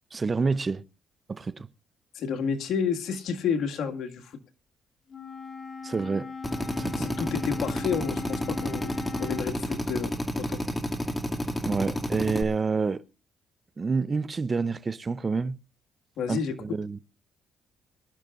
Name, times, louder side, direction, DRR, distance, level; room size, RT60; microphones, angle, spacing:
voice 1, 0.1-0.8 1.3-1.7 5.8-6.3 6.8-7.1 11.6-13.0 13.8-15.6 16.3-17.0, right 4 dB, 30° right, 0.6 m, -28 dB
voice 2, 2.1-4.4 7.0-8.9 9.2-10.6 16.2-16.6, left 6 dB, 75° left, 1.9 m, -30 dB
Wind instrument woodwind instrument, 5.1-9.5, left 5 dB, 40° left, 2.4 m, -39 dB
Drill, 6.4-12.4, left 1 dB, 15° left, 2.2 m, -31 dB
24.0 x 12.0 x 2.5 m
cardioid pair, 90°, 0 cm